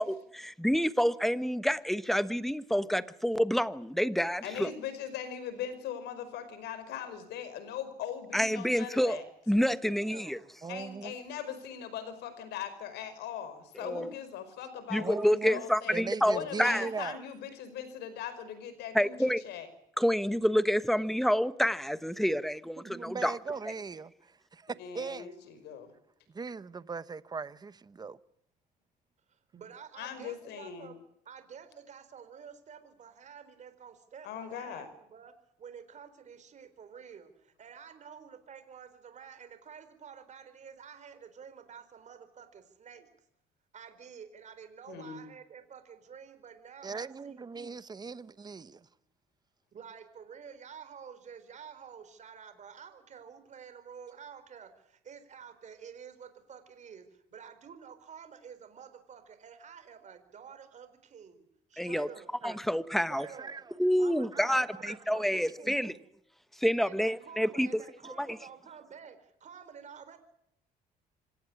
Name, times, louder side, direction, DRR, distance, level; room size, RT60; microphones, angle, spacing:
voice 1, 0.0-4.7 8.3-9.2 9.5-10.4 13.8-14.1 14.9-16.9 18.9-19.4 20.0-23.3 61.8-62.1 62.4-63.3 63.8-65.9 66.6-67.8 68.2-68.4, equal, ahead, 1.1 m, -28 dB
voice 2, 4.4-9.2 10.7-16.0 16.3-19.7 24.8-25.9 30.0-30.9 34.2-34.9 44.9-45.2, left 9 dB, 80° left, 5.2 m, -40 dB
voice 3, 9.8-10.5 29.3-31.0 31.2-35.3 35.6-43.1 43.7-47.5 49.7-62.3 63.1-63.5 64.0-66.0 66.8-70.2, right 7 dB, 45° right, 4.3 m, -50 dB
voice 4, 10.6-11.1 15.0-17.2 22.8-25.4 26.3-28.2 46.8-48.9 62.4-62.6 63.3-63.7 64.3-64.4 64.8-65.0, right 5 dB, 25° right, 1.0 m, -39 dB
26.5 x 16.5 x 9.9 m
cardioid pair, 110°, 17 cm